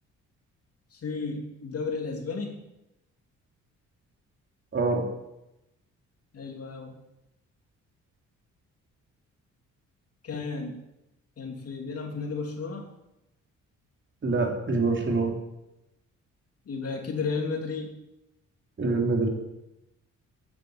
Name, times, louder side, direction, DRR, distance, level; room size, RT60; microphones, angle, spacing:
voice 1, 0.9-2.6 6.3-6.9 10.2-10.8 11.4-12.8 16.7-17.9, left 4 dB, 50° left, 2 dB, 2.9 m, -33 dB
voice 2, 4.7-5.0 14.2-15.3 18.8-19.3, right 3 dB, 40° right, 1 dB, 3.4 m, -25 dB
9.8 x 9.4 x 8.2 m, 0.90 s
cardioid pair, 90°, 30 cm